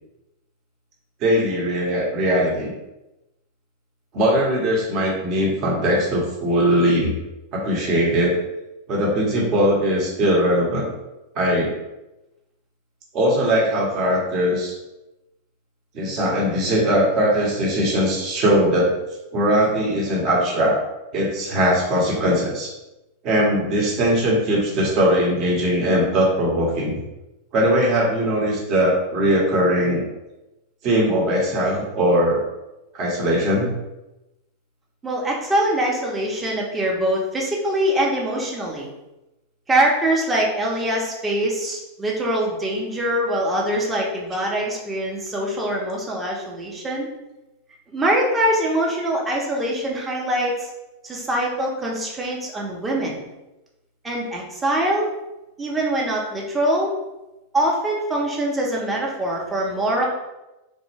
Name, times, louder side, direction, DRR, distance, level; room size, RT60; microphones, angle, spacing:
voice 1, 1.2-2.7 4.1-7.1 7.5-8.3 8.9-10.9 11.3-11.7 13.1-14.7 15.9-18.9 19.3-20.8 21.1-22.7 23.2-27.0 27.5-30.0 30.8-32.4 32.9-33.7, equal, 40° right, -3 dB, 1.0 m, -20 dB
voice 2, 35.0-38.9 39.7-47.1 47.9-50.7 51.0-53.2 54.0-55.1 55.6-56.9 57.5-60.1, right 1 dB, 15° right, -2 dB, 0.8 m, -23 dB
3.2 x 2.1 x 3.3 m, 0.98 s
figure-of-eight pair, 90°, 0 cm